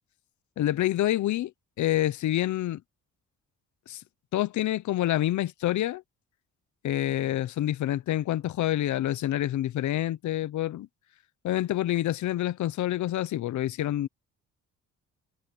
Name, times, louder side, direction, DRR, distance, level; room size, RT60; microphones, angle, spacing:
voice 1, 0.6-1.5 1.8-2.8 3.9-4.0 4.3-6.0 6.8-10.9 11.4-14.1, left 13 dB, 70° left, 0.9 m, -27 dB
cardioid pair, 90°, 30 cm